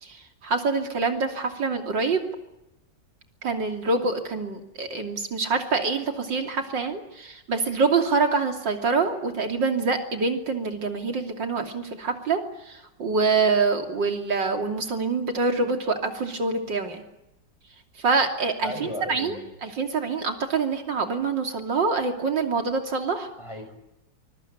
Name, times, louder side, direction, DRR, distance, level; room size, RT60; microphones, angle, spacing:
voice 1, 0.0-2.3 3.4-12.4 12.7-17.0 18.0-23.3, right 4 dB, 90° right, 5 dB, 3.6 m, -25 dB
voice 2, 18.6-19.4 23.4-23.8, left 1 dB, 15° left, 6 dB, 6.1 m, -35 dB
24.0 x 22.5 x 9.9 m, 0.91 s
omnidirectional pair, 1.9 m